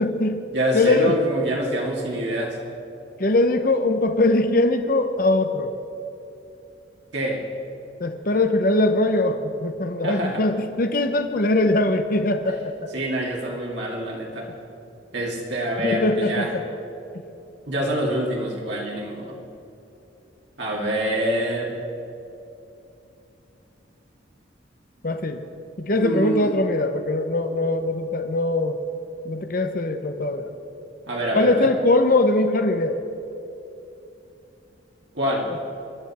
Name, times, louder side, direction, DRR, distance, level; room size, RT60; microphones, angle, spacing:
voice 1, 0.0-0.5 0.7-1.2 3.2-5.7 8.0-12.9 15.8-16.6 25.0-25.4 25.8-28.8 29.2-30.5 31.4-33.0, left 2 dB, 45° left, 7 dB, 0.8 m, -21 dB
voice 2, 0.5-2.6 7.1-7.4 10.0-10.4 12.9-14.5 15.1-16.5 17.7-19.3 20.6-21.7 26.0-26.5 31.1-31.7 35.1-35.5, right 1 dB, 65° right, -3 dB, 2.3 m, -26 dB
24.5 x 11.5 x 4.3 m, 2.8 s
head